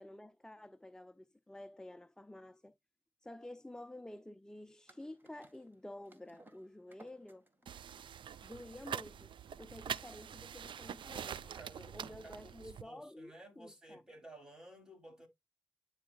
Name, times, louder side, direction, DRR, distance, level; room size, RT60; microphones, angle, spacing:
voice 1, 0.0-2.8 3.2-7.4 8.4-9.3 9.6-11.4 11.9-14.0, left 1 dB, 5° left, 0.5 m, -51 dB
sound 1, 4.9-10.0, right 1 dB, 25° right, 1.8 m, -63 dB
sound 2, 7.7-12.8, right 8 dB, 65° right, 0.4 m, -45 dB
voice 2, 11.3-15.3, right 1 dB, 10° right, 3.1 m, -55 dB
9.7 x 4.6 x 2.3 m
cardioid pair, 60°, 9 cm